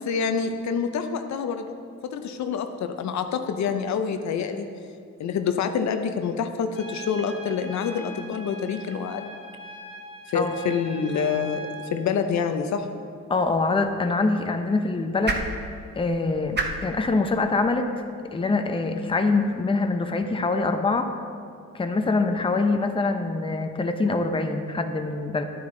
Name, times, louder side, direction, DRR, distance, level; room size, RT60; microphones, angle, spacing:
voice 1, 0.0-1.8 2.0-4.7 5.2-9.3 10.3-12.9, left 6 dB, 65° left, 7 dB, 0.7 m, -27 dB
Trumpet, 6.7-12.0, right 1 dB, 40° left, 1.8 m, -41 dB
voice 2, 13.3-15.4 16.0-17.9 18.3-21.1 21.7-25.4, left 3 dB, 15° left, 6 dB, 0.7 m, -24 dB
sound 1, 13.4-19.7, right 2 dB, 35° right, 1.1 m, -36 dB
11.0 x 9.6 x 3.8 m, 2.3 s
cardioid pair, 90°, 30 cm